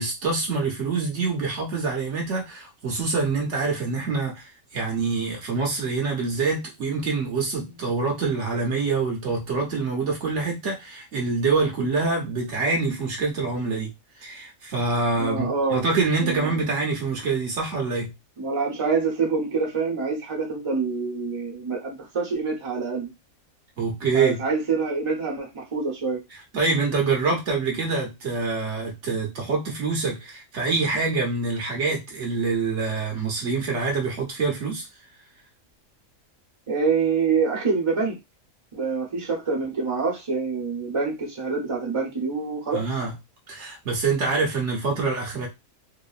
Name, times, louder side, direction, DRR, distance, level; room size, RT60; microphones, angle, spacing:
voice 1, 0.0-13.9 14.2-18.1 23.8-24.4 26.5-34.9 42.7-43.1 43.5-45.5, right 4 dB, 65° right, 0 dB, 1.1 m, -25 dB
voice 2, 15.2-15.8 16.2-16.5 18.4-23.1 24.1-26.2 36.7-38.2 38.7-42.8, right 4 dB, 25° right, -2 dB, 0.9 m, -26 dB
2.8 x 2.5 x 2.4 m, 0.23 s
omnidirectional pair, 1.4 m